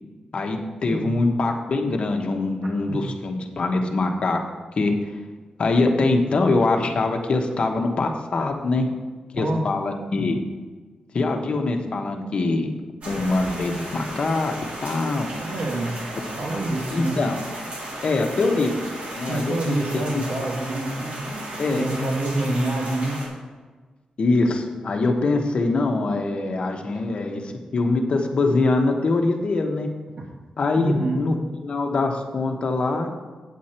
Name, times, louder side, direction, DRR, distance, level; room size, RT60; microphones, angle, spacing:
voice 1, 0.3-4.4 4.8-5.1 5.6-8.9 9.3-10.4 11.1-12.7 13.1-15.3 16.9-17.4 18.0-20.2 21.6-21.9 24.2-29.9 30.6-31.3 31.6-33.1, left 3 dB, 50° left, 3 dB, 1.1 m, -23 dB
voice 2, 2.8-3.1 9.4-9.7 15.4-16.0 16.4-17.2 19.3-21.4 21.7-23.2 30.1-30.2 30.8-31.2, right 2 dB, 55° right, -2 dB, 1.3 m, -26 dB
sound 1, 13.0-23.3, right 1 dB, 75° right, 2.8 m, -35 dB
8.5 x 8.3 x 4.4 m, 1.4 s
wide cardioid pair, 140°, 2 cm